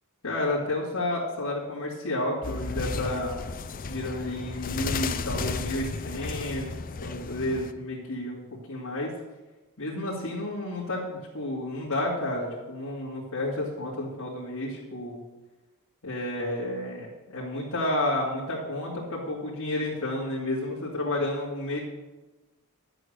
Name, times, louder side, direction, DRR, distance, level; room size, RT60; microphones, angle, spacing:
voice 1, 0.2-3.4 3.8-6.7 7.0-8.4 8.7-9.1 9.8-15.2 16.0-21.8, left 1 dB, 80° left, -7 dB, 2.6 m, -31 dB
sound 1, 2.4-7.7, left 4 dB, 40° left, 0.5 m, -33 dB
11.0 x 7.8 x 6.5 m, 1.2 s
head